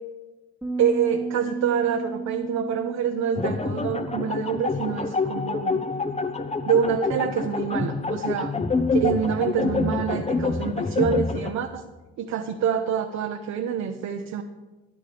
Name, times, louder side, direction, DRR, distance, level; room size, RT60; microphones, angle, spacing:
sound 1, 0.6-6.9, right 4 dB, 5° right, 1.3 m, -36 dB
voice 1, 0.8-5.8 6.7-8.5 8.9-11.8 12.2-14.4, right 7 dB, 65° right, 5 dB, 0.9 m, -26 dB
sound 2, 3.4-11.5, left 3 dB, 20° left, 0.8 m, -27 dB
13.0 x 11.0 x 3.4 m, 1.2 s
supercardioid pair, 65°, 30 cm